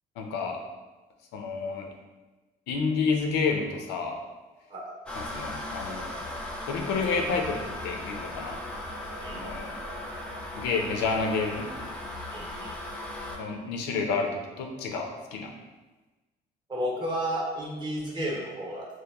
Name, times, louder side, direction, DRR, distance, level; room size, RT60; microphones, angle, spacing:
voice 1, 0.2-0.6 1.3-1.9 2.7-4.2 5.1-6.2 6.7-8.6 9.3-9.7 10.6-11.7 13.4-15.5, left 4 dB, 85° left, 3 dB, 0.4 m, -29 dB
sound 1, 5.1-13.4, left 1 dB, 5° left, 0.3 m, -37 dB
voice 2, 12.3-12.7 16.7-18.9, equal, 25° right, -3 dB, 0.7 m, -32 dB
2.9 x 2.1 x 2.2 m, 1.2 s
cardioid pair, 110°, 17 cm